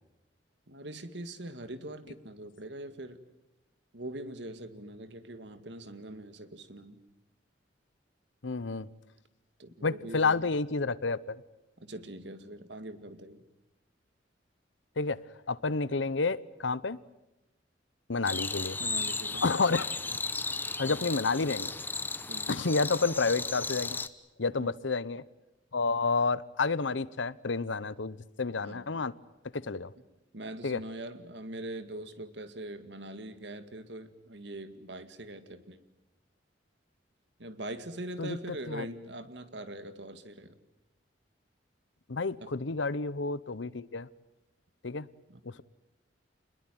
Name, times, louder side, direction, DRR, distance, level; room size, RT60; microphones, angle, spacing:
voice 1, 0.7-3.2 3.9-7.0 9.6-10.5 11.8-13.4 18.8-19.4 20.9-21.1 22.3-22.5 24.6-24.7 28.6-29.0 29.6-29.8 30.3-35.8 37.4-40.5 42.4-42.5 45.3-45.4, right 1 dB, 70° right, 11 dB, 2.1 m, -42 dB
voice 2, 8.4-8.9 9.8-11.4 15.0-15.2 15.5-17.0 18.1-18.8 19.3-19.9 20.8-21.7 22.5-24.0 24.4-25.2 25.7-29.1 29.5-29.9 30.6-30.8 38.2-38.9 42.1-44.1 44.8-45.1 45.4-45.6, left 4 dB, 85° left, 18 dB, 0.9 m, -30 dB
sound 1, 18.3-24.1, left 3 dB, 10° left, 1.0 m, -35 dB
28.0 x 21.0 x 9.2 m, 0.98 s
head